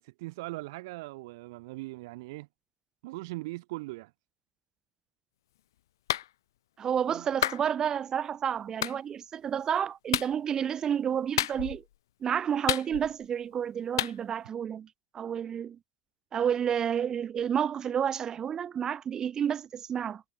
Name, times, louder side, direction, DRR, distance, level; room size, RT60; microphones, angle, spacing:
voice 1, 0.0-2.5 3.0-4.1 7.1-7.3, right 21 dB, 75° right, 4.4 m, -40 dB
Clapping, 6.1-6.3 7.4-7.6 8.8-9.0 10.1-10.3 11.4-11.8 12.7-13.2 14.0-14.1, left 13 dB, 85° left, 1.3 m, -29 dB
voice 2, 6.8-11.8 12.2-14.9 15.1-15.8 16.3-20.2, right 8 dB, 30° right, 4.6 m, -30 dB
supercardioid pair, 110°, 2 cm